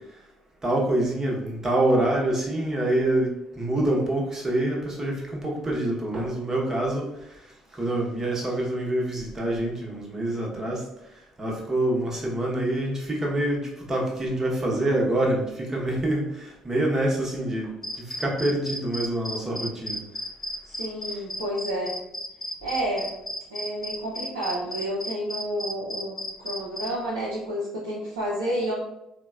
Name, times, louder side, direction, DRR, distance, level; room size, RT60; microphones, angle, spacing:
voice 1, 0.6-3.3 3.6-7.1 7.7-10.8 11.4-20.0 21.1-21.2, right 1 dB, 25° right, -2 dB, 0.9 m, -26 dB
sound 1, 17.8-26.9, left 1 dB, 15° left, 0.4 m, -33 dB
voice 2, 20.6-22.0 22.6-23.1 23.5-28.7, right 1 dB, 75° right, -6 dB, 0.5 m, -30 dB
3.8 x 2.1 x 2.3 m, 0.86 s
figure-of-eight pair, 50°, 2 cm